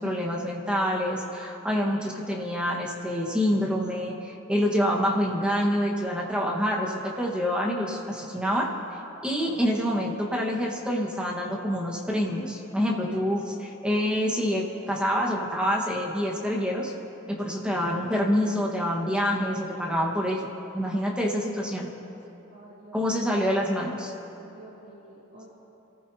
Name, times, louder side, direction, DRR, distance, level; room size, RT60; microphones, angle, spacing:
voice 1, 0.0-8.7 9.2-16.9 17.3-20.5 20.7-21.9 22.9-24.1, equal, 5° right, -1 dB, 1.5 m, -27 dB
voice 2, 22.5-23.2 24.5-25.5, right 1 dB, 70° right, -9 dB, 2.8 m, -49 dB
26.5 x 15.0 x 2.9 m, 3.0 s
head